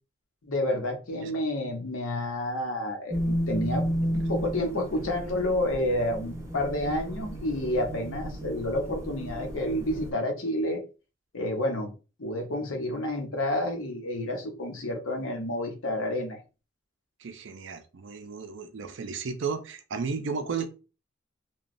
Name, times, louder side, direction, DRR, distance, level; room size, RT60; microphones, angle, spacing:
voice 1, 0.5-3.9 4.1-10.8 11.3-11.9 12.2-16.4, left 1 dB, 90° left, 0.9 m, -29 dB
sound 1, 3.1-10.1, equal, 15° right, 0.5 m, -33 dB
voice 2, 17.2-20.7, right 5 dB, 65° right, 0.4 m, -34 dB
3.0 x 2.2 x 2.5 m
head